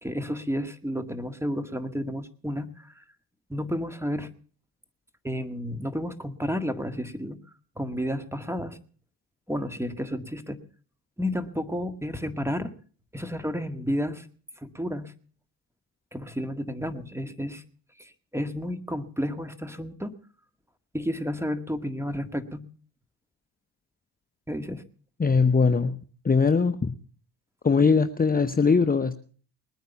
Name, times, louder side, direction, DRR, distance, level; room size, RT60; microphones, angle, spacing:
voice 1, 0.0-3.0 3.5-4.3 5.2-7.4 7.8-8.8 9.5-10.6 11.2-12.7 13.1-14.3 14.6-15.1 16.1-17.6 18.0-20.2 20.9-22.6 24.5-24.8, equal, 5° right, 10 dB, 1.8 m, -31 dB
voice 2, 25.2-25.9 26.2-26.9 27.6-29.1, left 5 dB, 20° left, 9 dB, 0.9 m, -21 dB
20.5 x 9.3 x 7.0 m, 0.43 s
supercardioid pair, 60°, 45 cm